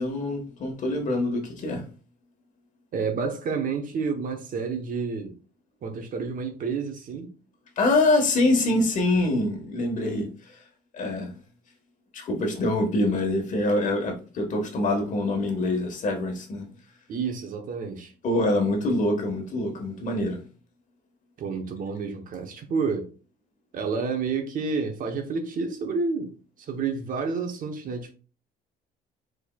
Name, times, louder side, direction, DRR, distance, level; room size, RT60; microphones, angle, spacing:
voice 1, 0.0-1.9 7.8-10.6 10.9-11.3 12.1-16.6 18.2-20.4, left 2 dB, 50° left, 1.4 m, -25 dB
voice 2, 2.9-5.4 5.8-7.3 17.1-18.1 21.4-23.1 23.7-28.1, right 5 dB, 55° right, 1.0 m, -29 dB
4.5 x 4.3 x 2.3 m
cardioid pair, 110°, 17 cm